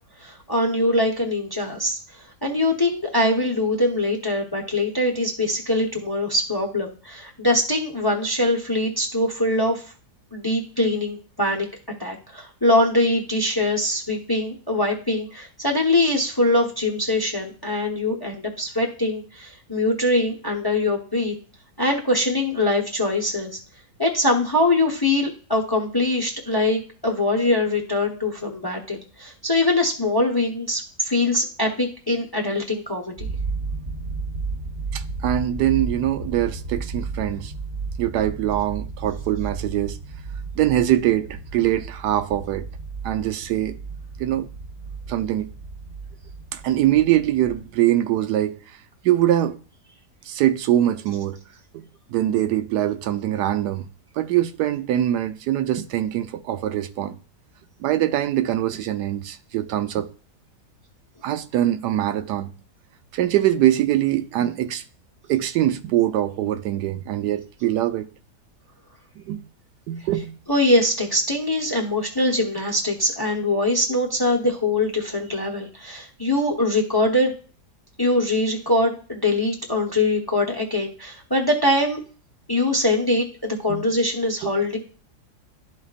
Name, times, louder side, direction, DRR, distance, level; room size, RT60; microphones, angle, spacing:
voice 1, 0.2-2.0 2.4-9.8 10.3-11.7 12.0-21.3 21.8-23.6 24.0-33.3 70.5-77.3 78.0-82.0 82.5-84.8, left 1 dB, 20° left, 0.8 m, -23 dB
sound 1, 33.2-47.7, right 4 dB, 35° right, 0.8 m, -33 dB
voice 2, 34.9-37.5 38.0-40.0 40.5-42.7 43.0-43.8 44.2-44.5 45.1-45.5 46.5-48.8 49.0-49.6 50.2-51.4 51.7-53.9 54.1-57.2 57.8-60.1 61.2-62.5 63.1-64.8 65.3-68.1 69.2-69.4 69.9-70.3 83.7-83.8 84.4-84.5, right 12 dB, 85° right, 1.2 m, -23 dB
12.5 x 4.2 x 2.4 m
omnidirectional pair, 1.8 m